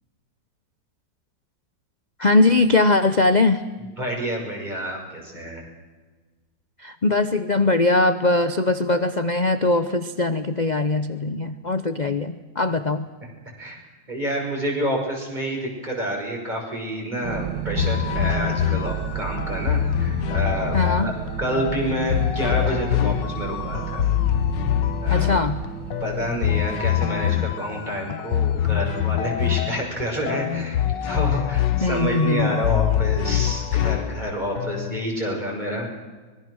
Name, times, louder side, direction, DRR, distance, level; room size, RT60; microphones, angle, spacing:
voice 1, 2.2-3.6 6.8-13.1 20.7-21.1 25.1-25.6 31.8-32.7, left 2 dB, 50° left, 11 dB, 0.5 m, -21 dB
voice 2, 4.0-5.6 13.6-13.8 14.1-21.1 21.4-24.0 25.0-25.4 26.0-35.9, equal, 20° right, 0 dB, 5.8 m, -28 dB
sound 1, 17.2-27.3, right 9 dB, 65° right, 1.6 m, -33 dB
sound 2, 17.8-35.0, left 11 dB, 70° left, 1.5 m, -24 dB
24.5 x 22.0 x 6.3 m, 1.3 s
omnidirectional pair, 2.0 m